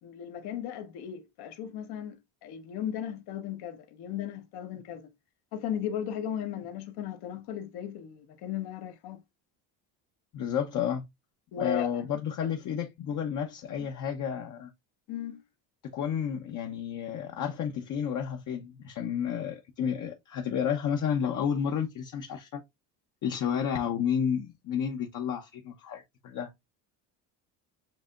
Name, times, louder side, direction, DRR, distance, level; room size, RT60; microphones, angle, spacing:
voice 1, 0.0-5.1 5.5-9.2 11.5-11.9 13.8-13.9 15.1-15.4, left 9 dB, 70° left, 1.2 m, -36 dB
voice 2, 10.3-11.0 11.6-14.7 15.9-22.6 23.2-26.5, left 8 dB, 50° left, 0.8 m, -31 dB
7.4 x 2.7 x 2.4 m
cardioid pair, 115°, 40 cm